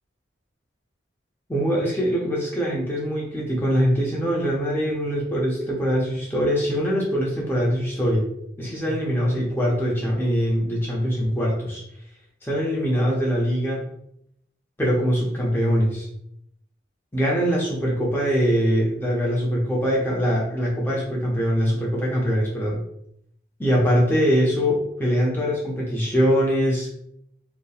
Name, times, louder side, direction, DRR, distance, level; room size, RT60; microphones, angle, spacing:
voice 1, 1.5-8.3 8.6-11.8 12.4-13.8 14.8-16.1 17.1-22.8 23.6-26.9, equal, 10° left, -4 dB, 0.5 m, -23 dB
2.8 x 2.0 x 2.3 m, 0.74 s
head